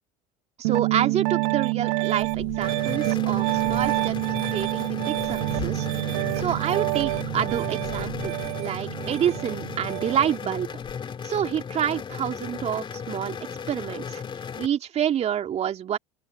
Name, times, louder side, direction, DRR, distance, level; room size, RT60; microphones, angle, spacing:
voice 1, 0.6-4.2 4.5-5.9 6.4-10.7 11.2-13.4 13.7-14.2 14.6-16.0, right 9 dB, 35° right, 2.9 m, -28 dB
Piano, 0.6-10.3, right 28 dB, 60° right, 1.8 m, -27 dB
sound 1, 2.2-10.9, left 22 dB, 55° left, 6.5 m, -46 dB
sound 2, 2.6-14.7, left 6 dB, 30° left, 3.1 m, -36 dB
open air
figure-of-eight pair, 75°, 18 cm